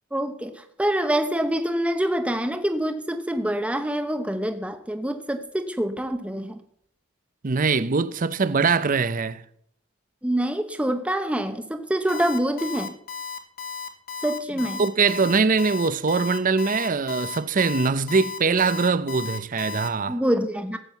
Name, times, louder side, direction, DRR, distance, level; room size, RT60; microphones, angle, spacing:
voice 1, 0.1-6.6 10.2-12.9 14.2-14.8 20.1-20.8, right 1 dB, 5° right, 0.8 m, -26 dB
voice 2, 7.4-9.4 14.8-20.2, right 4 dB, 40° right, 0.6 m, -22 dB
Alarm, 12.1-19.9, left 5 dB, 45° left, 1.8 m, -34 dB
15.0 x 7.5 x 8.1 m
head